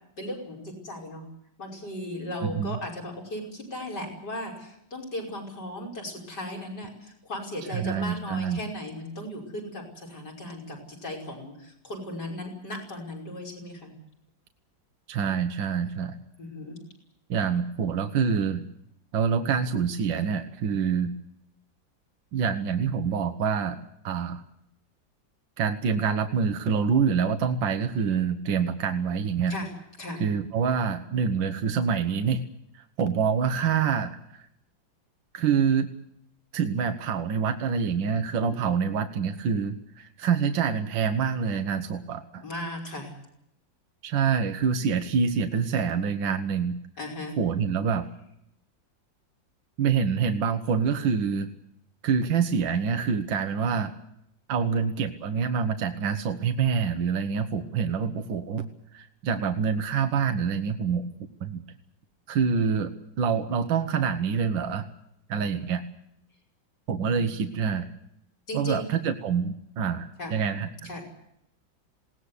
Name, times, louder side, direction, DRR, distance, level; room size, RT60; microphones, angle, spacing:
voice 1, 0.2-1.3 1.6-14.0 16.4-16.8 29.5-30.2 42.4-43.1 47.0-47.4 68.5-68.9 70.2-70.3 70.8-71.0, left 1 dB, 60° left, -1 dB, 6.3 m, -36 dB
voice 2, 2.4-2.8 7.7-8.6 15.1-16.2 17.3-18.6 19.1-21.1 22.3-23.8 24.0-24.4 25.6-29.5 30.2-32.4 32.7-34.4 35.3-35.9 36.5-42.4 44.0-46.7 47.4-48.1 49.8-51.5 52.0-53.9 54.5-61.1 61.4-61.6 62.3-62.9 63.2-64.9 65.3-65.8 66.9-67.9 68.5-70.9, right 6 dB, 75° right, 7 dB, 1.9 m, -26 dB
20.5 x 18.5 x 8.3 m, 0.76 s
omnidirectional pair, 2.1 m